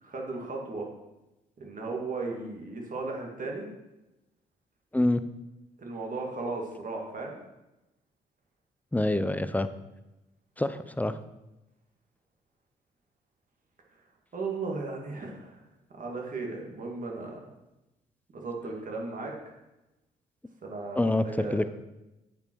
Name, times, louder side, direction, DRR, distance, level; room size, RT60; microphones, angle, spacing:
voice 1, 0.0-0.9 1.6-3.7 5.8-7.4 14.3-15.6 15.9-17.4 18.3-19.3 20.6-21.6, right 3 dB, 50° right, 0 dB, 2.2 m, -36 dB
voice 2, 8.9-9.7 10.6-11.2 21.0-21.7, left 1 dB, 10° left, 12 dB, 0.6 m, -26 dB
8.9 x 5.4 x 4.7 m, 0.98 s
supercardioid pair, 55°, 18 cm